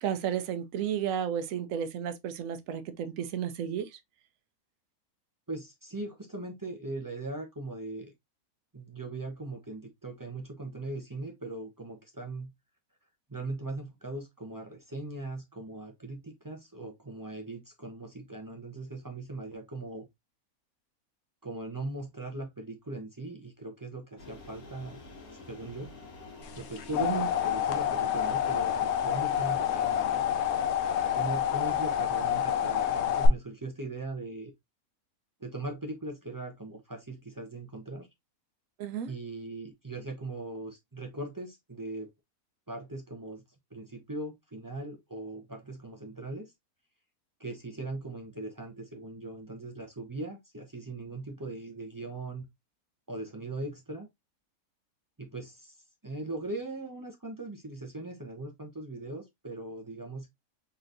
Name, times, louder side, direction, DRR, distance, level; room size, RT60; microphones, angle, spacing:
voice 1, 0.0-3.9 27.0-27.3 38.8-39.1, right 9 dB, 70° right, 1.0 m, -32 dB
voice 2, 5.5-8.1 8.7-12.5 13.3-20.1 21.4-25.0 25.3-25.9 26.6-30.2 31.1-34.5 35.4-38.1 39.1-42.1 42.7-43.4 43.7-46.5 47.4-52.4 53.1-54.1 55.2-55.8 56.0-60.3, right 2 dB, 25° right, 0.4 m, -39 dB
sound 1, 24.2-32.1, left 3 dB, 85° left, 1.8 m, -49 dB
sound 2, 26.6-33.3, left 10 dB, 65° left, 0.7 m, -28 dB
4.0 x 3.3 x 2.6 m
omnidirectional pair, 1.5 m